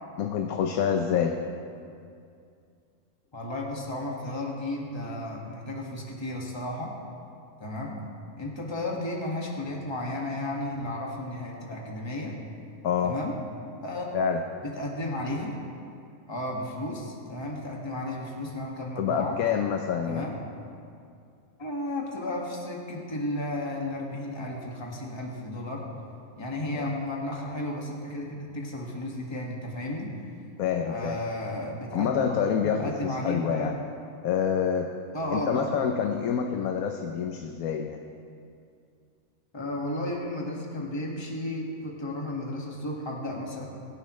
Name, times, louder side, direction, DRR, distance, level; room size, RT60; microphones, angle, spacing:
voice 1, 0.2-1.4 12.8-13.2 14.1-14.4 19.0-20.3 26.7-26.9 30.6-31.2 31.9-33.7 34.2-34.9 35.3-38.0, left 7 dB, 75° left, 4 dB, 1.2 m, -27 dB
voice 2, 3.3-6.9 7.6-8.0 8.4-12.3 13.0-13.3 13.8-14.2 14.6-15.6 16.3-19.4 20.0-20.4 21.6-25.8 26.4-30.1 30.9-33.8 35.1-35.7 39.5-43.7, left 1 dB, 20° left, -2 dB, 1.8 m, -33 dB
24.0 x 11.0 x 3.2 m, 2.4 s
omnidirectional pair, 1.5 m